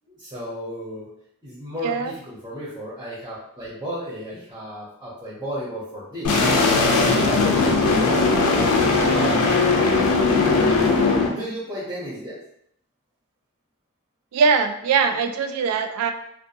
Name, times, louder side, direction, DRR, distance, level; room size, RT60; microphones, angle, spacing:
voice 1, 0.1-1.1 1.4-6.3 10.9-12.4, equal, 15° right, -8 dB, 0.6 m, -34 dB
sound 1, 6.2-11.3, left 3 dB, 85° left, 0.5 m, -19 dB
voice 2, 14.3-16.1, right 5 dB, 85° right, 11 dB, 0.3 m, -21 dB
2.4 x 2.2 x 2.6 m, 0.72 s
head